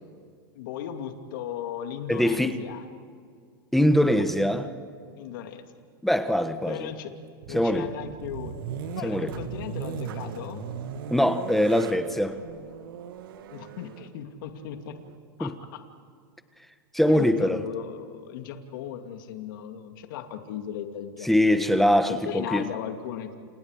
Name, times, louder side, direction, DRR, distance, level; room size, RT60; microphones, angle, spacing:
voice 1, 0.6-2.8 4.2-4.3 5.2-5.6 6.7-7.1 7.5-8.5 9.0-10.6 13.5-15.0 15.4-15.8 17.1-23.3, left 10 dB, 65° left, 2.5 m, -37 dB
voice 2, 2.1-2.6 3.7-4.6 6.0-6.9 7.5-7.9 9.0-9.3 11.1-12.4 15.4-15.5 16.9-17.6 21.2-22.7, equal, ahead, 1.4 m, -22 dB
sound 1, 7.4-15.2, right 7 dB, 75° right, 1.9 m, -38 dB
29.5 x 29.5 x 5.1 m
hypercardioid pair, 115°, 12 cm